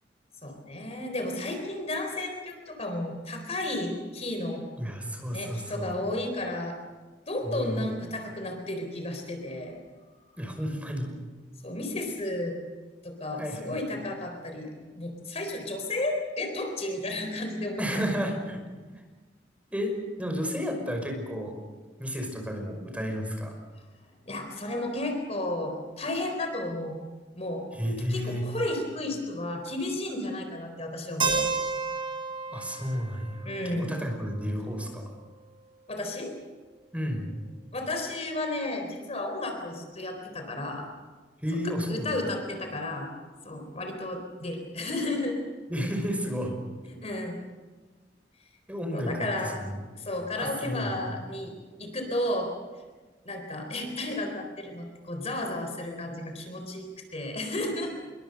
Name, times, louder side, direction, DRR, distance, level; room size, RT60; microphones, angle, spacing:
voice 1, 0.4-4.6 5.3-6.8 7.3-9.8 11.6-12.6 13.0-18.2 24.3-27.0 27.4-27.6 28.1-31.4 33.4-34.0 35.9-36.3 37.7-40.9 41.9-43.1 43.4-45.4 46.9-47.4 48.9-49.5 50.0-52.5 53.2-58.0, left 1 dB, 35° left, 4 dB, 4.0 m, -33 dB
voice 2, 4.8-5.9 7.4-7.9 10.4-11.1 13.4-13.8 17.8-18.6 19.7-21.5 22.0-23.6 27.8-28.4 32.5-35.1 36.9-37.3 41.4-42.2 45.7-46.6 48.7-49.8 50.3-51.0, equal, 10° right, 3 dB, 5.5 m, -32 dB
Keyboard (musical), 31.2-35.1, right 4 dB, 30° right, 4.2 m, -32 dB
27.5 x 23.0 x 6.7 m, 1.3 s
head